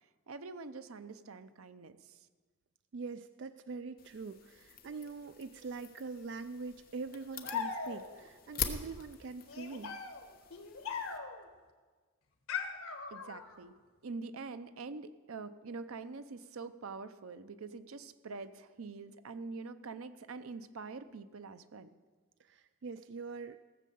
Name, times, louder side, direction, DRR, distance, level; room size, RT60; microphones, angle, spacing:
voice 1, 0.3-2.2 13.1-13.7 14.0-21.9, right 4 dB, 90° right, 12 dB, 0.7 m, -45 dB
voice 2, 2.9-10.0 22.4-23.6, right 4 dB, 55° right, 11 dB, 0.3 m, -43 dB
sound 1, 4.0-11.2, left 7 dB, 45° left, 1.0 m, -45 dB
sound 2, 7.4-8.3 9.5-11.5 12.5-13.6, left 6 dB, 85° left, 1.4 m, -40 dB
16.5 x 7.5 x 7.0 m, 1.4 s
head